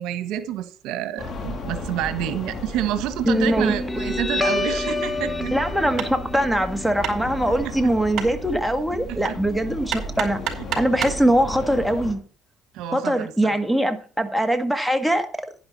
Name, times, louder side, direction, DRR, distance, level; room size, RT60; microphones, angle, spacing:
voice 1, 0.0-5.6 9.1-9.4 12.7-13.6, right 11 dB, 80° right, 1.4 m, -28 dB
sound 1, 1.2-12.1, left 2 dB, 50° left, 3.2 m, -35 dB
voice 2, 3.2-3.7 5.5-10.4 10.8-12.2 12.9-15.3, right 1 dB, ahead, 1.7 m, -22 dB
Guitar, 3.6-10.6, left 2 dB, 15° left, 0.9 m, -30 dB
Hammer, 6.0-11.3, right 8 dB, 55° right, 4.7 m, -33 dB
11.0 x 11.0 x 4.2 m
cardioid pair, 110°, 0 cm